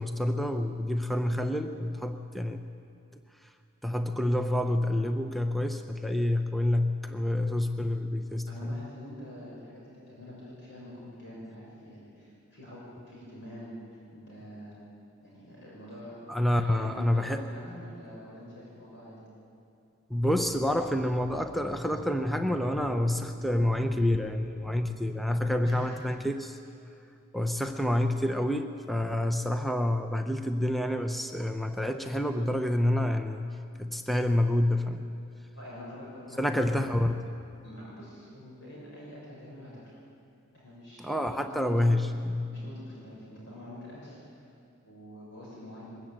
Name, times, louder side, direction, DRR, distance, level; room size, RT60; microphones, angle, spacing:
voice 1, 0.0-2.7 3.8-8.8 16.3-17.4 20.1-26.6 27.3-33.5 33.8-35.0 36.4-37.2 41.0-42.5, left 1 dB, ahead, 6 dB, 0.6 m, -28 dB
voice 2, 8.5-13.7 14.1-14.8 15.2-16.2 16.6-19.2 25.6-26.2 35.5-36.7 37.6-39.9 40.5-41.9 42.5-44.4 44.8-45.8, left 1 dB, 55° left, -6 dB, 6.6 m, -46 dB
22.5 x 14.0 x 8.9 m, 2.5 s
head